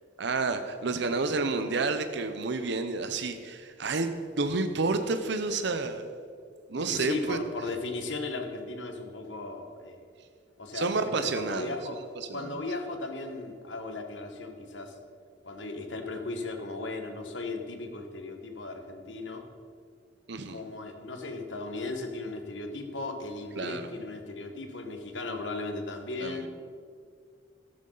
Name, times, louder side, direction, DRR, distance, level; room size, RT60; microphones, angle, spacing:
voice 1, 0.2-4.1 4.3-6.1 6.7-7.4 10.7-11.7 12.2-12.5 20.3-20.6 23.6-23.9 26.2-26.5, right 3 dB, 65° right, 8 dB, 0.8 m, -30 dB
voice 2, 6.9-10.0 10.6-12.0 12.3-14.9 15.4-19.5 20.5-26.5, left 2 dB, 75° left, 5 dB, 1.5 m, -36 dB
13.0 x 12.0 x 4.0 m, 2.2 s
head